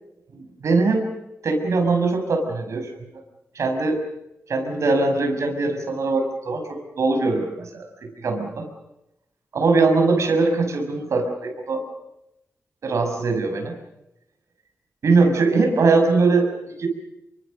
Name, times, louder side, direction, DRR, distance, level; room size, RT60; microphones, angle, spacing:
voice 1, 0.3-1.1 1.4-2.9 3.5-4.0 4.5-8.7 9.5-11.8 12.8-13.8 15.0-16.5 16.8-16.9, right 3 dB, 75° right, 4 dB, 6.3 m, -21 dB
29.0 x 24.0 x 6.5 m, 0.86 s
wide cardioid pair, 160°, 5 cm